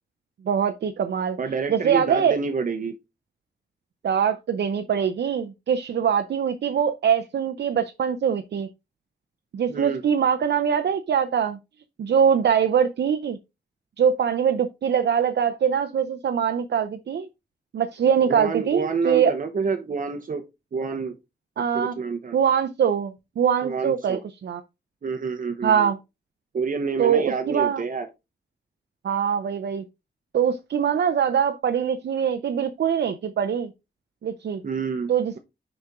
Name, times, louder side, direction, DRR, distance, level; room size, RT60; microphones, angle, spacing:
voice 1, 0.4-2.4 4.0-8.7 9.5-11.6 12.0-13.4 14.0-17.3 17.7-19.3 21.6-21.9 22.3-24.6 25.6-26.0 27.0-27.8 29.0-29.9 30.3-33.7 34.2-34.6 35.1-35.4, right 8 dB, 80° right, 0.7 m, -23 dB
voice 2, 1.4-2.9 9.7-10.0 18.3-20.4 20.7-21.1 21.6-22.4 23.6-24.2 25.0-25.9 26.5-28.1 34.6-35.1, right 5 dB, 50° right, 0.8 m, -28 dB
6.6 x 5.2 x 3.6 m
wide cardioid pair, 145°, 18 cm